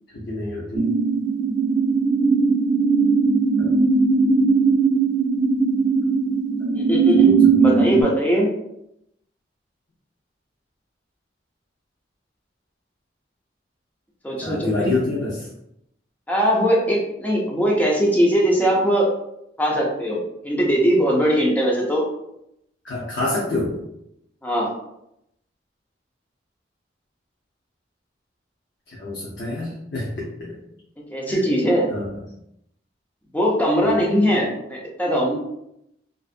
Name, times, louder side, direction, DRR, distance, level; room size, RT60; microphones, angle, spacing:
voice 1, 0.1-0.9 3.6-3.8 6.6-6.7 7.3-8.0 14.4-15.5 22.8-23.8 28.9-30.6 31.3-31.5 31.9-32.1 33.8-33.9, left 2 dB, 75° left, -6 dB, 0.6 m, -28 dB
sound 1, 0.8-8.0, right 4 dB, 45° right, 0.5 m, -18 dB
voice 2, 6.7-8.5 14.2-14.9 16.3-19.1 19.6-20.2 20.4-22.0 24.4-24.7 31.1-31.9 33.3-35.4, equal, 10° left, -3 dB, 0.5 m, -20 dB
2.6 x 2.4 x 2.4 m, 0.80 s
head